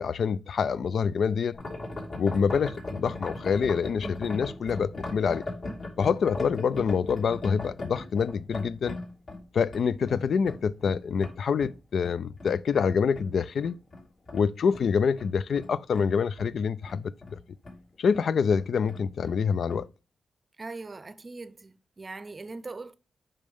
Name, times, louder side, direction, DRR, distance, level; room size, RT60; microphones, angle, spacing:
voice 1, 0.0-1.6 2.2-5.4 6.0-9.0 9.5-13.8 14.3-17.4 18.0-19.9, left 6 dB, 70° left, 0.4 m, -26 dB
sound 1, 1.5-12.9 13.1-16.5 16.8-17.4 17.6-17.8 18.1-18.2 18.5-19.4 19.7-19.8, left 2 dB, 50° left, 3.1 m, -39 dB
voice 2, 20.6-22.9, right 3 dB, 30° right, 0.6 m, -41 dB
8.4 x 5.5 x 3.5 m
cardioid pair, 100°, 0 cm